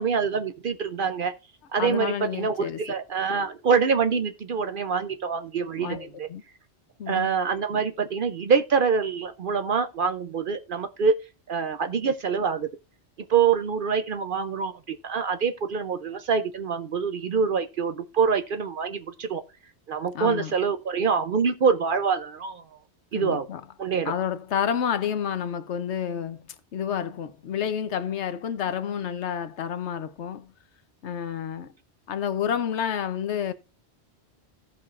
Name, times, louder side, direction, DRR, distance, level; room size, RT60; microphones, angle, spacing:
voice 1, 0.0-1.3 1.7-6.3 7.1-11.2 11.5-12.7 13.3-19.4 19.9-22.6 23.1-23.5 23.8-24.1, right 6 dB, 55° right, 0.7 m, -25 dB
voice 2, 1.8-2.8 5.8-6.4 7.0-7.3 7.7-7.8 20.1-20.5 23.1-23.6 24.1-26.4 26.7-30.5 31.0-31.7 32.1-33.5, left 8 dB, 80° left, 1.1 m, -29 dB
16.5 x 5.8 x 2.5 m
omnidirectional pair, 1.2 m